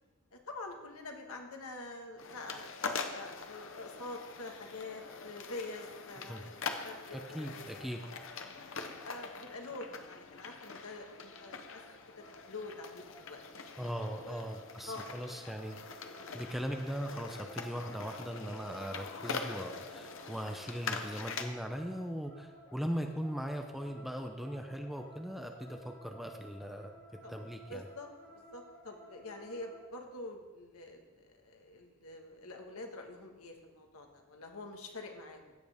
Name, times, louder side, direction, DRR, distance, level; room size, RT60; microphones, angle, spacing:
voice 1, 0.3-2.7 3.1-6.6 6.8-7.8 8.5-11.8 12.2-13.8 14.1-14.5 14.9-15.0 15.3-15.6 16.2-16.4 27.2-27.3 27.7-35.5, left 2 dB, 85° left, 3 dB, 1.6 m, -46 dB
sound 1, 2.2-21.4, left 4 dB, 60° left, 0.9 m, -43 dB
voice 2, 7.1-8.0 13.8-15.8 16.3-26.9 27.3-27.8, equal, ahead, 4 dB, 0.6 m, -39 dB
sound 2, 11.2-29.9, equal, 25° left, 2.3 m, -56 dB
16.0 x 7.7 x 3.5 m, 1.2 s
head